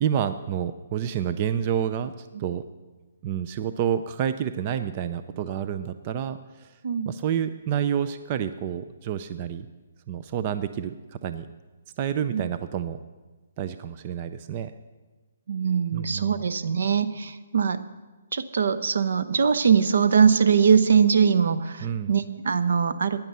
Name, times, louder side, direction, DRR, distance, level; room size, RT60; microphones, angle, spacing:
voice 1, 0.0-2.6 3.2-6.7 7.0-9.7 10.1-11.0 11.2-11.5 12.0-13.0 13.6-14.7 15.9-16.4 21.8-22.1, right 9 dB, 30° right, 11 dB, 0.5 m, -29 dB
voice 2, 6.8-7.1 12.3-12.4 15.5-17.8 18.3-23.2, right 6 dB, 70° right, 14 dB, 0.8 m, -22 dB
15.5 x 10.5 x 5.5 m, 1.2 s
hypercardioid pair, 165°, 0 cm